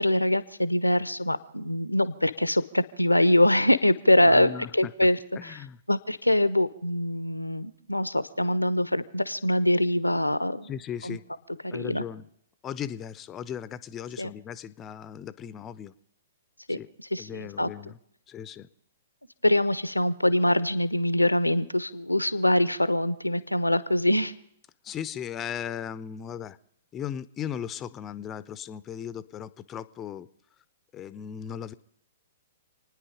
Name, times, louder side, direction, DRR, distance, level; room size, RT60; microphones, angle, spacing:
voice 1, 0.0-5.6 5.9-10.7 11.0-11.2 11.6-12.0 14.2-14.3 16.7-16.8 17.1-17.7 19.4-24.3, left 1 dB, 90° left, 16 dB, 0.8 m, -24 dB
voice 2, 4.2-4.9 5.4-5.8 10.6-11.3 11.7-12.3 12.6-15.9 16.7-16.9 17.2-18.0 18.3-18.7 24.8-26.6 26.9-30.3 30.9-31.7, left 9 dB, 20° left, 16 dB, 0.6 m, -37 dB
28.5 x 9.8 x 5.1 m, 0.70 s
figure-of-eight pair, 115°, 0 cm